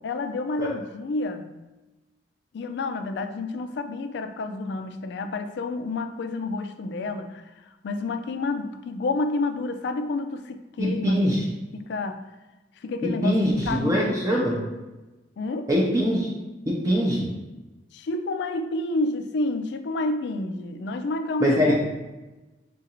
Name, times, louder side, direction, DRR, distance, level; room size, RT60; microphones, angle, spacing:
voice 1, 0.0-1.5 2.5-7.4 7.8-11.2 11.7-12.2 12.8-14.5 15.4-15.7 17.9-21.8, left 2 dB, 65° left, 8 dB, 0.3 m, -29 dB
voice 2, 10.8-11.4 13.0-14.5 15.7-16.3 16.7-17.3 21.4-21.8, equal, 20° right, -4 dB, 0.5 m, -23 dB
3.7 x 2.6 x 4.2 m, 1.1 s
head